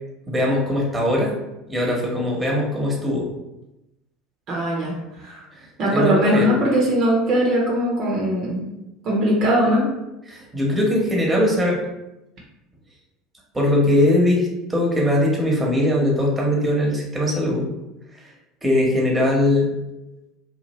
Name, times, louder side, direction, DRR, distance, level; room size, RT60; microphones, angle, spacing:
voice 1, 0.3-1.3 1.7-3.3 5.5-6.5 10.3-11.8 13.5-17.7 18.1-18.3 18.6-19.7, left 1 dB, 15° right, -2 dB, 0.9 m, -20 dB
voice 2, 4.5-4.9 5.2-5.5 5.8-8.7 9.0-9.8, equal, 50° right, -2 dB, 0.7 m, -20 dB
2.8 x 2.4 x 3.0 m, 0.94 s
figure-of-eight pair, 70°, 0 cm